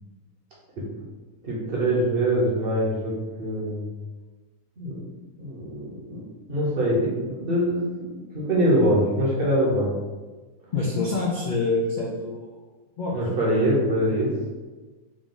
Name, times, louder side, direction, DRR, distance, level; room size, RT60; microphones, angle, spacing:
voice 1, 1.4-3.9 4.8-5.0 5.4-9.9 13.1-14.3, right 1 dB, 45° right, -5 dB, 0.9 m, -24 dB
voice 2, 10.7-12.6 13.0-13.2, left 3 dB, 85° left, -4 dB, 0.4 m, -26 dB
3.7 x 2.4 x 3.8 m, 1.3 s
omnidirectional pair, 1.6 m